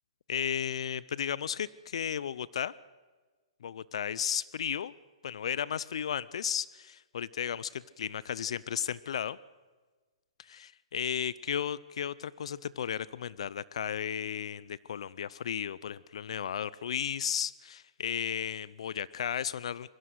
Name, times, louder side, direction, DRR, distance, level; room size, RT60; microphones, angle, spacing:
voice 1, 0.3-2.7 3.6-4.9 5.2-9.4 10.4-19.9, left 8 dB, 70° left, 21 dB, 0.6 m, -34 dB
23.0 x 15.0 x 8.0 m, 1.3 s
hypercardioid pair, 140°, 3 cm